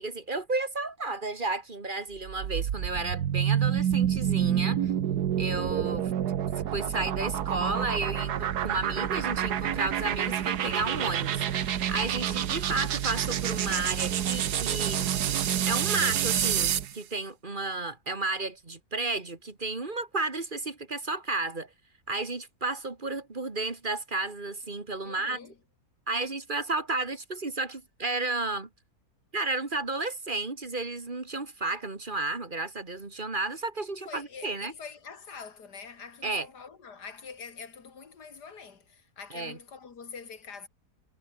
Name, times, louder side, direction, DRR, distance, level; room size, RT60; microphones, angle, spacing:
voice 1, 0.0-4.9 5.4-6.1 6.7-15.1 15.7-21.7 22.1-25.4 26.1-28.7 29.3-34.7 36.2-36.5 39.3-39.6, right 3 dB, 30° right, 2.3 m, -32 dB
sound 1, 2.2-16.9, right 10 dB, 80° right, 1.6 m, -28 dB
voice 2, 25.0-25.6 33.9-40.7, left 5 dB, 85° left, 2.8 m, -45 dB
omnidirectional pair, 1.7 m